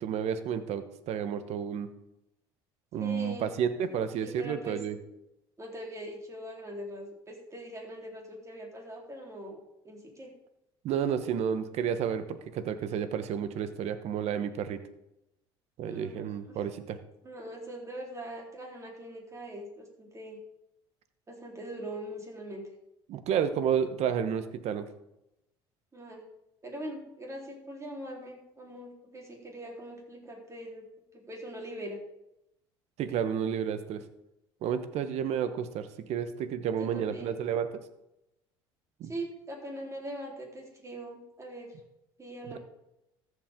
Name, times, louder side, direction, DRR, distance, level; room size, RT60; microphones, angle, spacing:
voice 1, 0.0-1.9 2.9-5.0 10.8-14.8 15.8-17.0 23.1-24.8 33.0-34.0 34.6-37.8 39.0-39.1, right 8 dB, 65° right, 11 dB, 1.1 m, -31 dB
voice 2, 3.0-3.5 3.9-4.8 5.6-9.6 9.8-10.3 15.8-16.5 17.2-20.4 21.3-22.6 25.9-26.2 26.6-30.8 31.1-32.0 36.8-37.3 39.0-41.7 42.2-42.6, right 1 dB, 25° right, -1 dB, 3.9 m, -42 dB
14.0 x 8.1 x 3.7 m, 0.86 s
hypercardioid pair, 70°, 12 cm